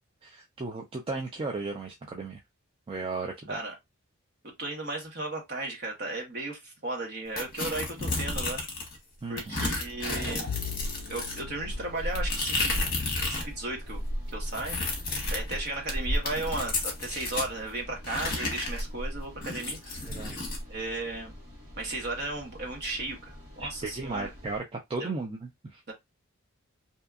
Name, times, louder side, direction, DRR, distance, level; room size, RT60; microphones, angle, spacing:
voice 1, 0.2-2.4 2.9-3.6 9.2-9.6 20.1-20.4 23.6-25.8, right 3 dB, 25° right, 0.3 m, -35 dB
voice 2, 4.6-8.6 9.3-10.5 11.1-12.8 13.2-14.0 14.3-14.8 15.3-20.1 20.7-21.3 21.8-24.3 25.0-25.1 25.9-26.0, right 2 dB, 45° right, 1.0 m, -35 dB
sound 1, 7.4-9.0 9.4-13.5 13.8-17.5 18.0-20.6, left 2 dB, 40° left, 0.9 m, -32 dB
sound 2, 9.5-24.6, left 1 dB, 85° right, 1.4 m, -48 dB
Bowed string instrument, 10.5-13.5, left 9 dB, 85° left, 0.3 m, -41 dB
2.7 x 2.4 x 2.3 m
head